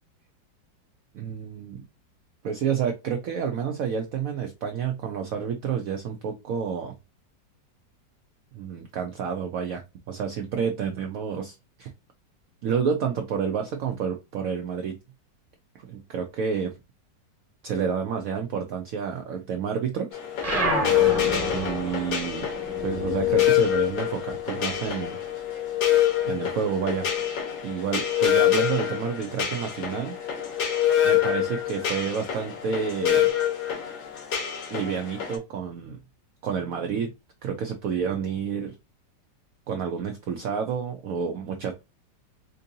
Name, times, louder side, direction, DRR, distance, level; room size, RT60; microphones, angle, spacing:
voice 1, 1.1-1.8 2.4-6.9 8.5-9.8 10.1-11.9 12.6-15.0 15.7-16.7 17.6-20.1 21.5-22.5 22.8-25.2 26.2-27.1 27.6-30.2 31.0-33.3 34.7-36.0 36.4-37.1 37.4-38.7 39.7-41.7, right 7 dB, 75° right, 4 dB, 0.7 m, -29 dB
sound 1, 20.1-35.4, left 11 dB, 90° left, 1.8 m, -26 dB
sound 2, 20.4-25.3 25.6-27.0, equal, 25° right, 1.1 m, -31 dB
4.4 x 2.6 x 2.6 m, 0.25 s
omnidirectional pair, 2.0 m